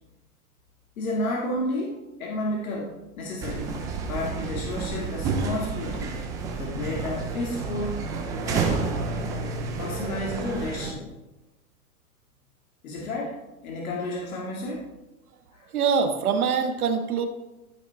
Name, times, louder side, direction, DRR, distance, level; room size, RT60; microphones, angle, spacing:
voice 1, 1.0-3.8 4.1-6.2 6.5-8.1 8.4-8.8 9.8-11.1 12.8-13.4 13.6-14.9 15.5-15.7, left 1 dB, 65° left, -2 dB, 2.2 m, -31 dB
sound 1, 3.4-10.9, right 4 dB, 10° right, 0.4 m, -30 dB
voice 2, 15.7-17.3, right 6 dB, 75° right, 5 dB, 1.7 m, -24 dB
13.5 x 5.9 x 4.2 m, 1.0 s
hypercardioid pair, 140°, 45 cm